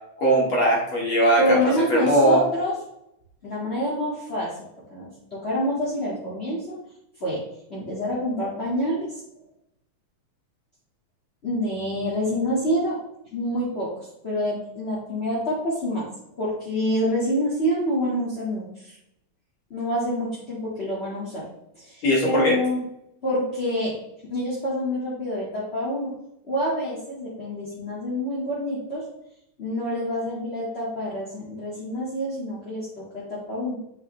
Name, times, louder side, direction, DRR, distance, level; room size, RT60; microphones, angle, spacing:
voice 1, 0.2-1.4 1.9-2.4 22.0-22.5, right 1 dB, 45° left, -4 dB, 2.8 m, -19 dB
voice 2, 1.4-2.7 3.4-4.5 4.9-6.8 7.2-7.4 7.7-9.2 11.4-13.0 13.3-16.1 16.4-19.0 19.7-21.4 21.7-22.8 23.2-23.9 24.3-26.1 26.4-29.0 29.6-33.8, equal, 25° left, -8 dB, 1.8 m, -27 dB
8.9 x 5.5 x 3.3 m, 0.80 s
omnidirectional pair, 3.3 m